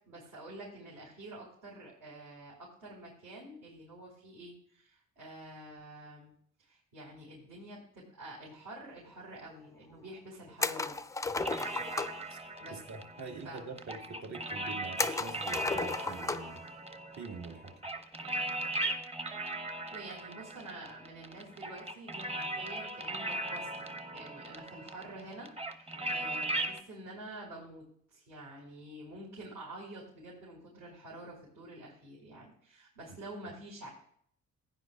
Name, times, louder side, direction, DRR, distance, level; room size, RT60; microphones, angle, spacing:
voice 1, 0.1-6.3 6.6-11.0 12.6-12.8 13.4-13.6 19.9-33.9, right 1 dB, 80° right, -7 dB, 4.6 m, -48 dB
sound 1, 10.6-12.3 15.0-16.6 16.9-17.0 18.6-18.9, left 3 dB, 10° left, 0.4 m, -34 dB
sound 2, 11.4-26.8, right 1 dB, 20° right, 0.9 m, -38 dB
voice 2, 12.7-16.6 17.2-17.7, right 4 dB, 65° right, 2 dB, 1.9 m, -44 dB
15.5 x 9.4 x 2.4 m, 0.62 s
cardioid pair, 90°, 30 cm